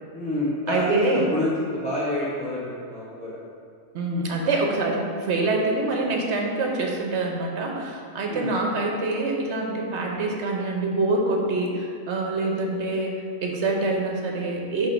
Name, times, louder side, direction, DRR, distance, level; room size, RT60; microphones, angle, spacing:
voice 1, 0.1-3.4 8.3-8.5, left 1 dB, 10° left, -9 dB, 0.6 m, -28 dB
voice 2, 0.7-1.3 3.9-13.1 13.4-14.9, right 2 dB, 70° right, 0 dB, 1.1 m, -25 dB
6.1 x 3.6 x 5.1 m, 2.3 s
omnidirectional pair, 1.2 m